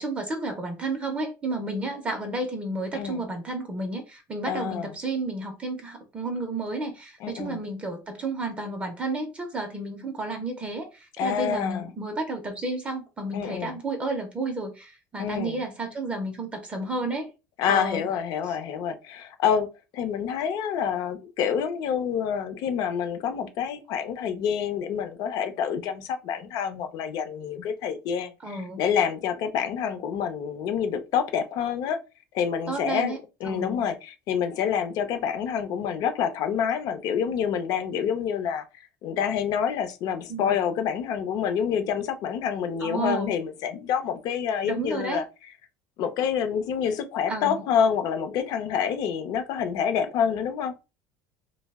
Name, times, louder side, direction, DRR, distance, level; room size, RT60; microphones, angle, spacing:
voice 1, 0.0-17.3 17.7-18.1 18.4-18.6 28.4-28.8 32.7-33.2 33.4-33.8 40.3-40.5 42.8-43.4 44.6-45.2 47.3-47.6, right 2 dB, 15° right, 0.4 m, -31 dB
voice 2, 4.4-4.9 7.2-7.6 11.2-11.9 13.3-13.7 15.2-15.6 17.6-19.7 19.9-32.0 32.3-33.1 33.4-38.6 39.0-45.2 46.0-50.7, left 7 dB, 50° left, 0.5 m, -27 dB
2.6 x 2.0 x 3.4 m
cardioid pair, 160°, 8 cm